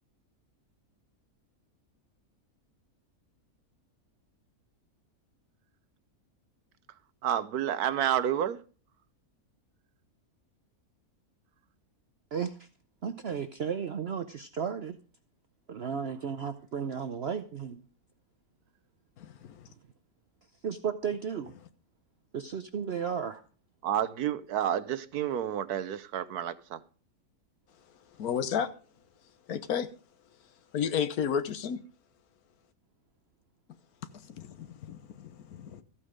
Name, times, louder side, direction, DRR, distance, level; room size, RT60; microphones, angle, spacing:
voice 1, 7.2-8.6 23.8-26.8, right 10 dB, 85° right, 1.3 m, -30 dB
voice 2, 12.3-12.7 13.0-15.0 15.7-17.8 20.6-21.5 22.3-23.4, right 7 dB, 50° right, 0.9 m, -34 dB
voice 3, 19.2-19.7 28.1-28.7 29.5-29.9 30.7-31.8 34.1-35.8, left 8 dB, 75° left, 1.5 m, -32 dB
14.5 x 8.6 x 5.1 m
omnidirectional pair, 1.6 m